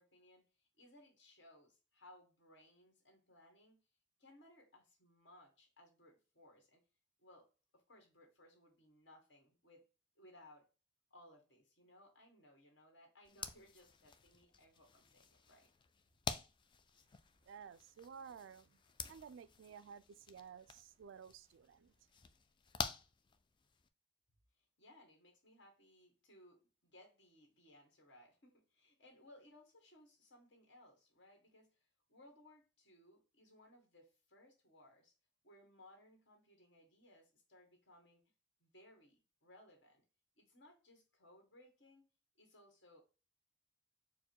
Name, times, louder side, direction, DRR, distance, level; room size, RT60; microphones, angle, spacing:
voice 1, 0.0-3.8 4.2-6.8 7.2-7.5 7.7-9.8 10.1-10.7 11.1-15.7 24.6-35.1 35.4-38.2 38.6-40.0 40.4-42.0 42.4-43.0, left 1 dB, 65° left, 1.5 m, -64 dB
sound 1, 13.2-23.9, left 5 dB, 25° left, 0.3 m, -49 dB
voice 2, 17.5-18.8 19.1-21.9, right 7 dB, 80° right, 0.3 m, -54 dB
4.6 x 2.1 x 4.4 m
head